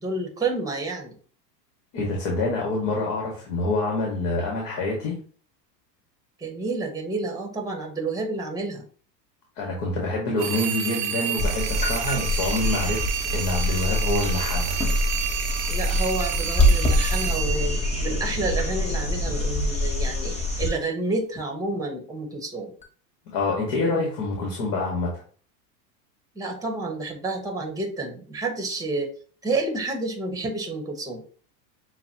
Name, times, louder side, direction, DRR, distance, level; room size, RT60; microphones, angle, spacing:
voice 1, 0.0-1.2 6.4-8.8 15.7-17.8 18.0-22.7 26.3-29.1 29.4-31.2, right 3 dB, 5° right, 2 dB, 1.1 m, -29 dB
voice 2, 1.9-5.2 9.6-14.8 23.3-25.2, left 2 dB, 55° left, -2 dB, 1.7 m, -26 dB
sound 1, 10.4-18.6, right 10 dB, 50° right, 0.6 m, -31 dB
sound 2, 11.4-20.7 22.8-22.9, left 1 dB, 15° left, 0.9 m, -25 dB
6.8 x 2.3 x 2.8 m, 0.42 s
hypercardioid pair, 110°, 49 cm